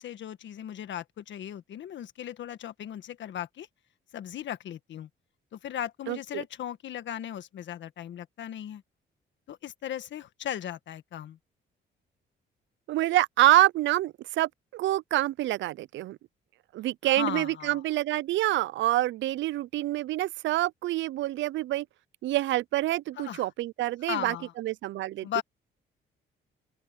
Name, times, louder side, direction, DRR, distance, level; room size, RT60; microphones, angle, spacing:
voice 1, 0.0-3.7 4.1-5.1 5.5-8.8 9.5-11.4 17.0-17.8 23.2-23.5 24.1-24.5 25.2-25.4, left 10 dB, 70° left, 1.5 m, -37 dB
voice 2, 6.1-6.4 12.9-16.2 16.7-21.9 22.2-25.3, right 15 dB, 70° right, 0.4 m, -27 dB
open air
cardioid pair, 90°, 20 cm